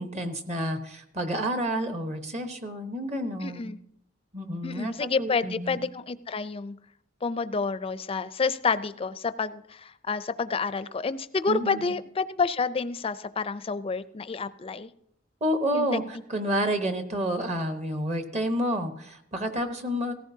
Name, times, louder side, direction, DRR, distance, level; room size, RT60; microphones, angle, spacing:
voice 1, 0.0-3.7 4.3-5.8 11.5-11.9 15.4-20.1, equal, 35° right, 7 dB, 1.0 m, -29 dB
voice 2, 3.4-3.8 4.6-6.7 7.2-14.9 15.7-15.9, left 4 dB, 30° left, 13 dB, 0.4 m, -29 dB
17.0 x 14.5 x 2.7 m, 0.72 s
head